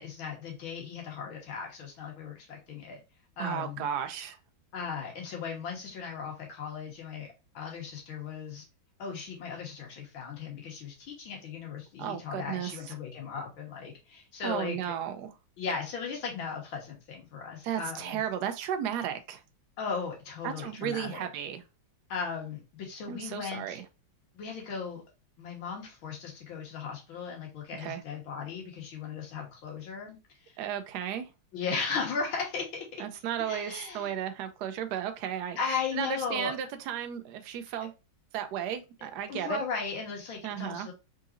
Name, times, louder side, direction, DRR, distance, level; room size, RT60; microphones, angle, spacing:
voice 1, 0.0-3.0 3.4-3.9 4.7-7.3 7.5-8.6 9.0-14.9 15.6-18.2 19.8-21.3 22.1-23.8 24.3-25.0 25.4-30.2 30.5-30.6 31.5-33.0 33.4-34.1 35.6-36.5 39.3-40.9, left 5 dB, 80° left, 2.0 m, -37 dB
voice 2, 3.4-4.4 12.0-12.7 14.4-15.3 17.6-19.4 20.4-21.6 23.1-23.8 27.8-28.0 30.6-31.3 33.0-35.6 35.9-37.9 38.3-39.6 40.4-40.9, right 9 dB, 70° right, 1.0 m, -34 dB
3.9 x 3.8 x 2.5 m
omnidirectional pair, 2.2 m